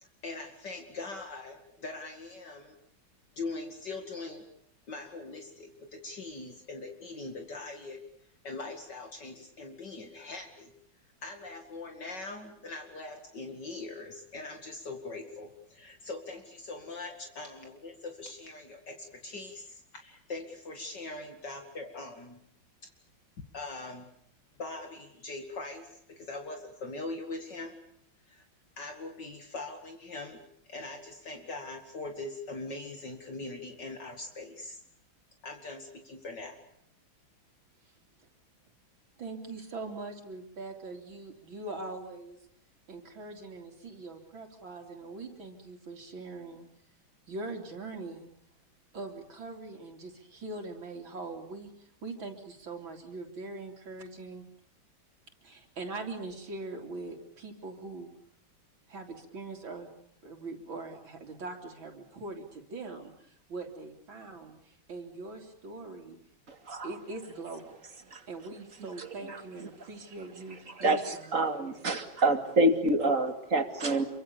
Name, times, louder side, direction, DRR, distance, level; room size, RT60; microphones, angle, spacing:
voice 1, 0.0-2.7 3.4-4.5 4.9-8.0 8.4-10.7 11.2-22.4 23.5-24.1 24.6-27.7 28.3-28.5 28.8-30.4 30.7-34.8 35.4-36.6, left 3 dB, 60° left, 4 dB, 2.9 m, -41 dB
voice 2, 39.2-42.4 42.9-46.7 47.3-48.3 48.9-54.4 55.4-58.1 58.9-59.9 60.2-66.2 66.8-67.8 68.3-71.7, right 3 dB, 80° right, 2 dB, 3.9 m, -42 dB
voice 3, 69.0-69.4 70.8-71.0 71.3-74.1, right 2 dB, 40° right, 7 dB, 2.7 m, -27 dB
28.0 x 24.5 x 7.0 m, 0.69 s
omnidirectional pair, 2.1 m